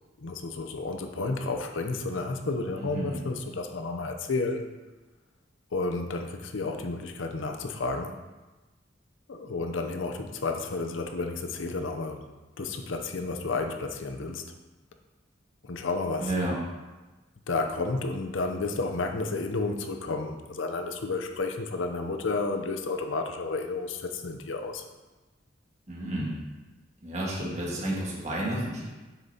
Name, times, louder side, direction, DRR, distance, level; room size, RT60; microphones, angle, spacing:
voice 1, 0.2-4.7 5.7-8.2 9.3-12.3 12.6-14.5 15.6-16.3 17.5-24.9, left 3 dB, 85° left, 5 dB, 0.6 m, -31 dB
voice 2, 2.8-3.2 16.2-16.6 25.9-26.4 27.0-28.9, right 1 dB, 35° right, -4 dB, 1.6 m, -31 dB
7.4 x 6.6 x 2.8 m, 1.2 s
head